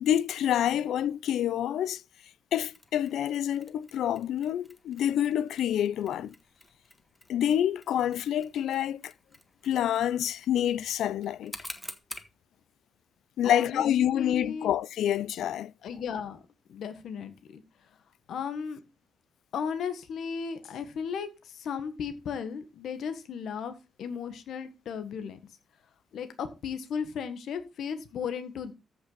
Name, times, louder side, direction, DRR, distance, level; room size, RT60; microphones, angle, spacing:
voice 1, 0.0-2.0 2.5-6.3 7.3-9.1 9.6-11.5 13.4-15.7, left 10 dB, 90° left, 0.5 m, -27 dB
Mechanisms, 2.6-12.4, left 1 dB, 10° left, 1.4 m, -49 dB
voice 2, 13.4-13.8 14.1-14.7 15.8-16.4 16.7-18.0 18.3-18.8 19.5-25.4 26.1-28.7, left 6 dB, 75° left, 1.4 m, -35 dB
14.0 x 6.0 x 4.0 m
cardioid pair, 130°, 0 cm